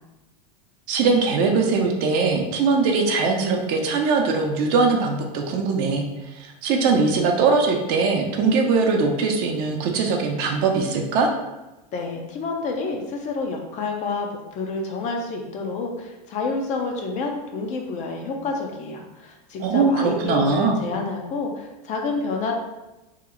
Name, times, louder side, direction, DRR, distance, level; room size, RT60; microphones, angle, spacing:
voice 1, 0.9-6.0 6.4-11.3 19.6-20.8, right 4 dB, 50° right, 2 dB, 0.6 m, -21 dB
voice 2, 11.9-14.3 14.5-22.5, left 3 dB, 35° left, 2 dB, 0.5 m, -28 dB
2.8 x 2.0 x 3.7 m, 1.0 s
supercardioid pair, 125°, 21 cm